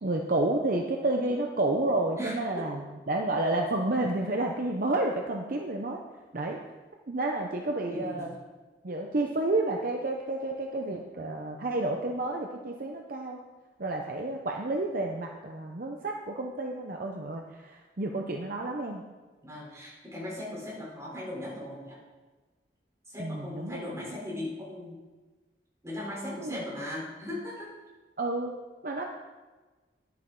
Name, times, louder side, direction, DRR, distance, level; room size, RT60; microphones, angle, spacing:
voice 1, 0.0-6.0 6.3-6.6 7.1-8.4 8.8-13.4 13.8-19.0 23.2-24.0 26.4-26.6 28.2-28.6 28.8-29.0, right 2 dB, 50° right, 2 dB, 0.8 m, -30 dB
voice 2, 2.2-2.7 7.9-8.3 19.4-22.0 23.1-25.0 25.8-27.7, left 1 dB, 15° right, -5 dB, 3.8 m, -38 dB
10.5 x 10.5 x 3.9 m, 1.3 s
head